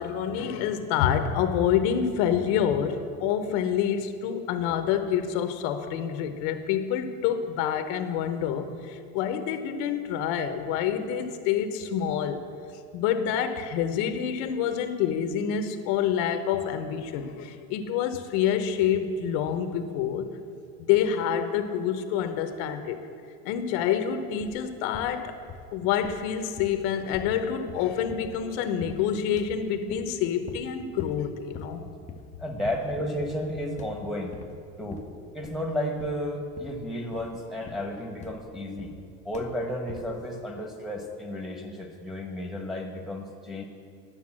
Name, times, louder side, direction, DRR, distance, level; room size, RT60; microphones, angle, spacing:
voice 1, 0.0-12.4 12.9-20.3 20.8-23.0 23.4-25.4 25.7-31.9, left 8 dB, 75° left, 8 dB, 0.9 m, -27 dB
sound 1, 24.4-24.7 24.9-25.8 26.0-28.5 28.8-29.1 29.4-30.2 30.5-30.7 31.0-31.3 31.5-31.8 32.1-32.4 32.6-33.0 33.2-33.5 33.8-34.6 34.9-35.7 36.0-36.3 36.6-36.9 37.1-39.1 39.3-39.6 39.9-40.2, left 5 dB, 25° left, 0.6 m, -44 dB
voice 2, 32.4-34.3 34.8-35.0 35.3-38.9 39.2-43.6, left 1 dB, ahead, 1 dB, 1.4 m, -32 dB
11.5 x 6.9 x 7.5 m, 2.3 s
cardioid pair, 140°, 31 cm